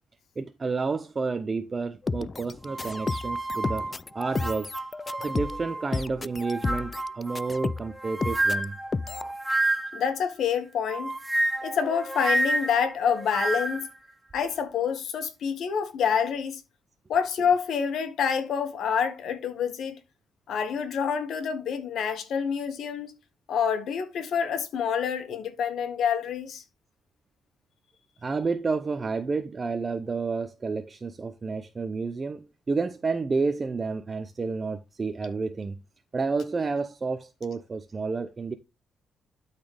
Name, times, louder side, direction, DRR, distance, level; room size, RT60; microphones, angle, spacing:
voice 1, 0.4-3.8 4.1-4.7 5.2-8.8 28.2-35.8 36.1-38.5, right 4 dB, 30° right, 0.6 m, -30 dB
sound 1, 2.1-7.9 8.2-8.6 8.9-9.3, left 4 dB, 30° left, 0.3 m, -32 dB
sound 2, 2.6-5.9 6.4-10.1 10.9-13.9, right 1 dB, 10° right, 1.2 m, -30 dB
voice 2, 9.9-11.1 11.6-13.9 14.3-16.6 17.1-20.0 20.5-23.1 23.5-26.6, left 7 dB, 75° left, 1.6 m, -27 dB
12.5 x 4.1 x 3.4 m
cardioid pair, 95°, 0 cm